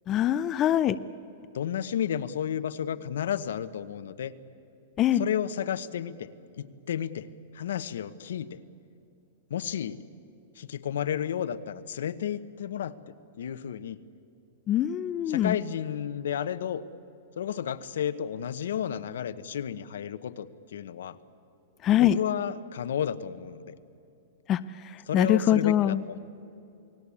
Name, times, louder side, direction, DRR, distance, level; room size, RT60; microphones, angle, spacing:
voice 1, 0.1-1.0 5.0-5.2 14.7-15.6 21.8-22.2 24.5-26.0, left 11 dB, 20° left, 12 dB, 0.5 m, -23 dB
voice 2, 1.5-4.3 5.2-6.3 6.6-7.3 7.5-8.6 9.5-10.0 10.6-14.0 15.3-16.8 17.4-21.2 22.0-23.7 25.1-26.2, left 9 dB, 80° left, 12 dB, 1.1 m, -32 dB
29.0 x 19.0 x 8.6 m, 2.7 s
supercardioid pair, 165°, 0 cm